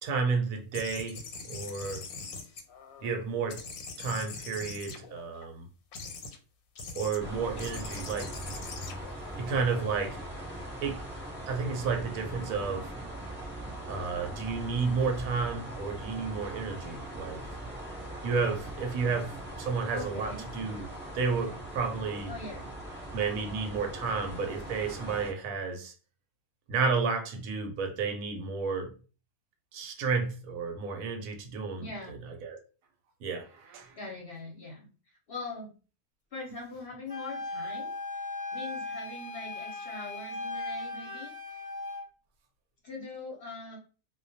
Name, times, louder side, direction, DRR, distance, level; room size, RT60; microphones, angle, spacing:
voice 1, 0.0-1.2 1.4-2.1 3.0-3.6 4.0-5.7 6.9-8.3 9.3-10.2 10.8-11.0 11.5-12.9 13.9-17.4 18.2-19.3 19.6-22.3 23.1-25.9 26.7-28.9 29.7-32.2 32.4-32.6 33.2-33.9, right 5 dB, 75° right, 1.0 m, -31 dB
sound 1, 0.7-3.2 3.5-5.4 5.9-6.4 6.8-7.2 7.6-10.1, left 4 dB, 90° left, 1.1 m, -42 dB
sound 2, 7.2-25.3, right 1 dB, 10° right, 0.6 m, -41 dB
voice 2, 19.9-20.5 22.3-22.7 31.7-32.2 34.0-34.9 35.3-35.7 36.3-41.3 42.8-43.8, left 3 dB, 55° left, 0.7 m, -42 dB
Wind instrument woodwind instrument, 37.1-42.1, left 2 dB, 5° left, 1.0 m, -38 dB
2.2 x 2.2 x 2.6 m
omnidirectional pair, 1.5 m